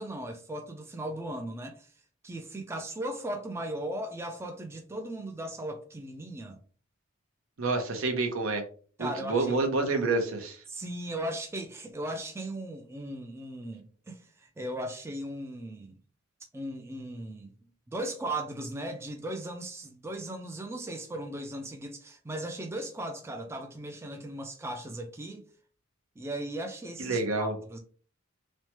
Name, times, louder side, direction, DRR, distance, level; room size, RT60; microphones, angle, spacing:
voice 1, 0.0-1.9 2.2-6.6 9.0-9.6 10.7-16.0 16.5-17.5 17.9-25.4 26.2-27.8, right 1 dB, 15° right, 0.3 m, -37 dB
voice 2, 7.6-8.6 9.0-10.6 27.0-27.6, right 3 dB, 75° right, 0.7 m, -28 dB
3.1 x 2.1 x 2.9 m
head